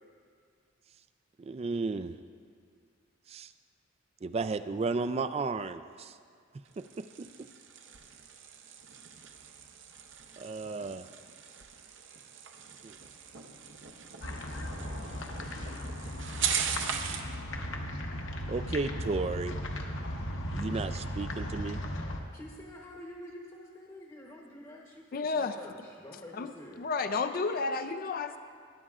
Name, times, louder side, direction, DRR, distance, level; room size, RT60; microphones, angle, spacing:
voice 1, 1.4-2.1 3.3-3.5 4.2-6.2 6.8-7.3 10.4-11.1 12.8-13.0 18.5-19.6 20.5-21.8, right 3 dB, 30° right, 12 dB, 0.3 m, -34 dB
sound 1, 6.7-17.4, right 7 dB, 60° right, 0.7 m, -39 dB
sound 2, 14.2-22.2, left 1 dB, 65° left, 1.0 m, -37 dB
voice 2, 22.3-26.9, left 1 dB, 20° left, -2 dB, 0.9 m, -48 dB
voice 3, 25.1-25.6 26.3-26.5 26.8-28.4, left 4 dB, 45° left, 8 dB, 0.4 m, -31 dB
19.5 x 10.0 x 2.4 m, 2.2 s
head